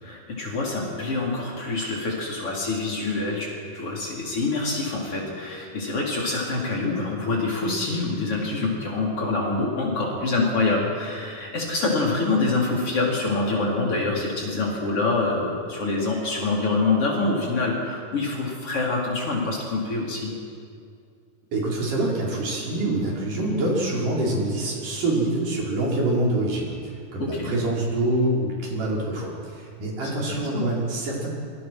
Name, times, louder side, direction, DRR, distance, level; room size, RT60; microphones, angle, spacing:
voice 1, 0.0-3.5 3.7-20.3 27.2-27.6 30.1-30.6, left 3 dB, 45° left, -2 dB, 4.9 m, -26 dB
voice 2, 21.5-31.3, right 2 dB, 80° right, -4 dB, 6.8 m, -25 dB
27.0 x 25.5 x 6.3 m, 2.3 s
omnidirectional pair, 3.7 m